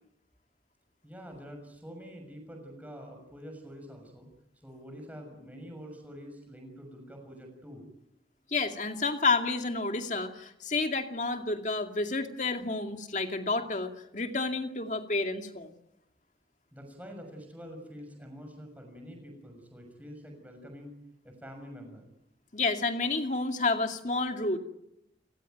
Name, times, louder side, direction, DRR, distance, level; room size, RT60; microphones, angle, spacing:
voice 1, 1.0-4.3 4.6-7.9 16.7-20.9 21.2-22.0, equal, 10° right, 4 dB, 6.5 m, -46 dB
voice 2, 8.5-15.7 22.5-24.6, left 3 dB, 45° left, 6 dB, 2.3 m, -30 dB
29.5 x 17.0 x 9.2 m, 0.83 s
head